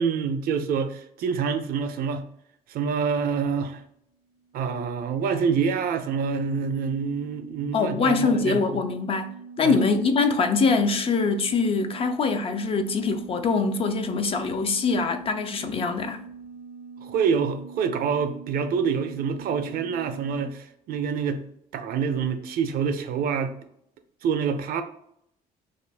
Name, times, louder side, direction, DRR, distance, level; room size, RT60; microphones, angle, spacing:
voice 1, 0.0-2.2 2.7-3.8 4.5-8.6 9.6-9.8 17.0-21.4 21.7-23.5 24.2-24.8, right 6 dB, 60° right, 0.5 m, -26 dB
sound 1, 4.3-20.5, right 5 dB, 80° left, 0.7 m, -44 dB
voice 2, 7.7-9.3 9.6-16.2, left 4 dB, 35° left, 0.4 m, -23 dB
2.5 x 2.4 x 3.3 m
cardioid pair, 110°, 17 cm